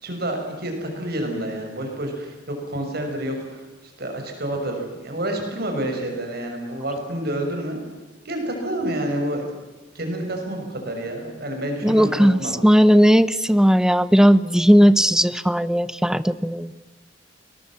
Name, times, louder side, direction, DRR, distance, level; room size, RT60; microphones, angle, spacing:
voice 1, 0.0-3.6 4.0-7.8 8.2-9.5 9.9-12.5, right 1 dB, 60° right, 3 dB, 5.8 m, -28 dB
voice 2, 11.8-16.7, equal, 5° right, 15 dB, 0.8 m, -16 dB
29.0 x 20.5 x 7.4 m, 1.2 s
head